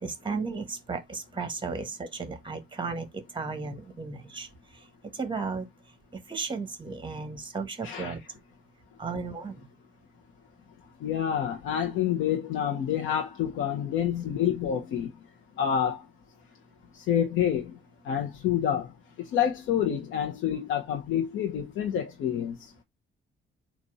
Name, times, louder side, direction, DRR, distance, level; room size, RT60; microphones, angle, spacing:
voice 1, 0.0-4.5 5.1-5.7 6.1-8.2 9.0-9.5, right 4 dB, 25° right, 1.3 m, -34 dB
voice 2, 7.8-8.1 11.0-15.1 15.6-16.0 16.9-17.7 18.0-18.9 19.2-22.6, left 9 dB, 85° left, 0.9 m, -28 dB
4.1 x 2.6 x 4.8 m
cardioid pair, 90°, 20 cm